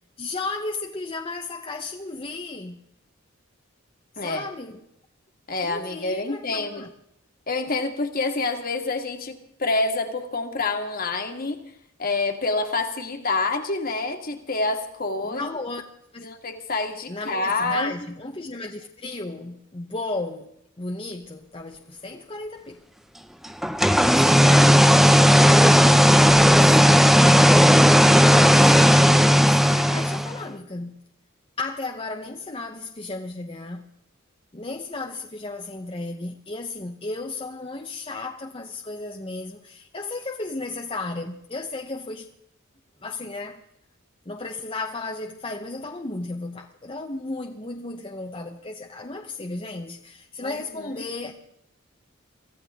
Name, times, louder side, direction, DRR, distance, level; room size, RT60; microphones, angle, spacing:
voice 1, 0.2-2.8 4.1-4.8 5.6-6.9 15.2-15.8 16.1-16.2 17.1-20.5 20.8-22.8 24.1-27.8 28.1-31.0 31.6-33.9 34.5-42.3 43.0-43.6 44.3-51.3, left 2 dB, 25° left, 1.0 m, -34 dB
voice 2, 5.5-6.8 7.5-11.6 12.0-15.5 16.2-17.9 50.4-50.9, left 3 dB, 45° left, 2.0 m, -27 dB
sound 1, 23.6-30.4, equal, ahead, 0.6 m, -15 dB
24.5 x 15.5 x 3.7 m
head